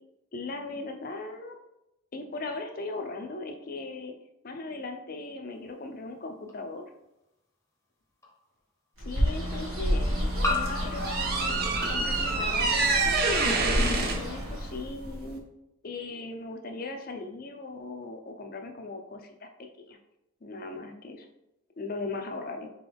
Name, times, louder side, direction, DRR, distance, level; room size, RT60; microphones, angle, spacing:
voice 1, 0.3-1.6 2.1-4.1 4.4-6.8 9.0-13.2 13.6-15.4 15.8-19.5 19.9-20.0 20.4-21.3 21.8-22.7, left 3 dB, 45° left, 5 dB, 0.5 m, -38 dB
sound 1, 6.5-6.6 8.2-8.3 10.4-12.9, left 3 dB, 15° left, 0.8 m, -35 dB
Bird, 9.0-14.9, equal, 85° right, 1.6 m, -30 dB
sound 2, 10.2-15.4, right 3 dB, 45° right, 0.6 m, -28 dB
4.0 x 3.8 x 3.4 m, 0.89 s
head